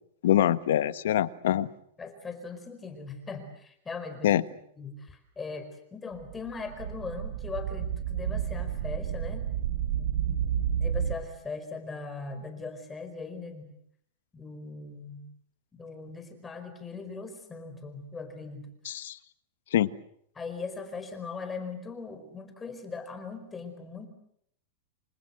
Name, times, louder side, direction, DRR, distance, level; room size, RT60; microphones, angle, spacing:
voice 1, 0.2-1.7 4.2-4.4 18.8-19.2 19.7-19.9, left 12 dB, 80° left, 14 dB, 1.3 m, -24 dB
voice 2, 2.0-4.4 4.8-9.5 9.9-10.1 10.7-13.7 14.3-15.2 15.7-18.7 20.3-24.1, left 4 dB, 15° left, 8 dB, 4.9 m, -40 dB
sound 1, 6.2-11.2, right 9 dB, 80° right, 5.0 m, -31 dB
27.5 x 25.5 x 7.7 m, 0.69 s
supercardioid pair, 150°, 0 cm